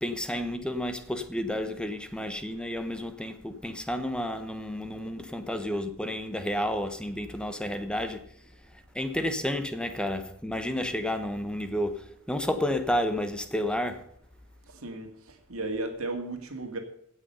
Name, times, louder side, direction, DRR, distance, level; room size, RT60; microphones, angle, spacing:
voice 1, 0.0-8.2 8.9-14.0, left 1 dB, 5° left, 1.0 m, -31 dB
voice 2, 15.5-16.8, right 2 dB, 70° right, 2.0 m, -34 dB
16.5 x 6.4 x 5.5 m
head